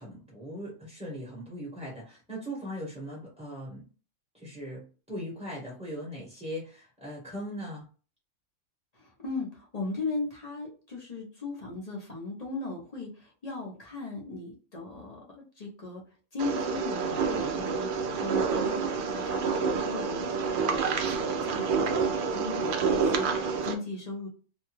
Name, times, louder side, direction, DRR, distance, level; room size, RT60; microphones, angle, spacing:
voice 1, 0.0-3.8 4.3-7.8, equal, 5° right, -5 dB, 0.9 m, -39 dB
voice 2, 8.9-16.0 16.3-24.3, left 3 dB, 40° left, -2 dB, 0.7 m, -38 dB
sound 1, 16.4-23.7, right 5 dB, 70° right, 0.5 m, -28 dB
2.6 x 2.2 x 3.0 m, 0.37 s
omnidirectional pair, 1.4 m